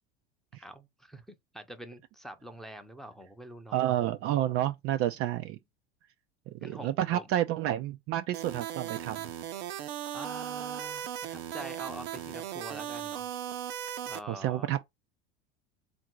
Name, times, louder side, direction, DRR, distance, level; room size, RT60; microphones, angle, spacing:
voice 1, 0.6-3.8 6.6-7.3 10.1-13.3 14.0-14.8, right 1 dB, ahead, 0.7 m, -45 dB
voice 2, 3.7-5.6 6.5-9.3 14.3-14.8, right 12 dB, 45° right, 0.4 m, -30 dB
sound 1, 8.3-14.2, right 11 dB, 80° right, 0.8 m, -37 dB
3.6 x 2.6 x 4.5 m
hypercardioid pair, 95°, 33 cm